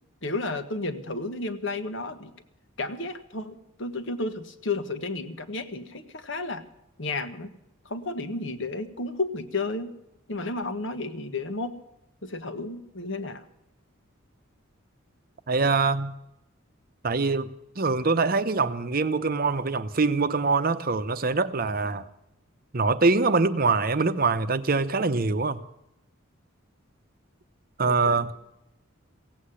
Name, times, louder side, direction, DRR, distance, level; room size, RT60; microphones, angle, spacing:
voice 1, 0.2-2.3 2.8-6.6 7.0-7.5 7.8-9.9 10.3-11.8 12.2-13.4 27.8-28.2, left 2 dB, 60° left, 1.4 m, -32 dB
voice 2, 15.5-16.1 17.0-17.5 17.8-22.1 22.7-25.6 27.8-28.3, right 4 dB, 45° right, 0.8 m, -24 dB
16.5 x 8.4 x 10.0 m
head